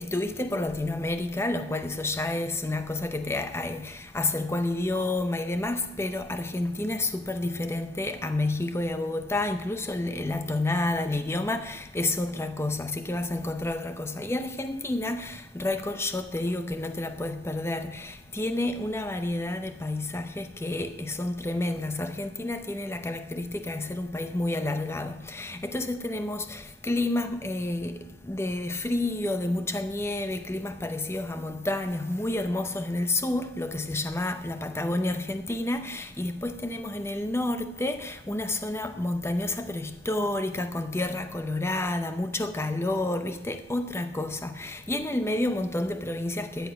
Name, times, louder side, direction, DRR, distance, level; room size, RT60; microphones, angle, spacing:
voice 1, 0.0-28.0 28.3-46.7, left 2 dB, 15° left, 0.7 m, -30 dB
13.0 x 8.2 x 5.3 m
head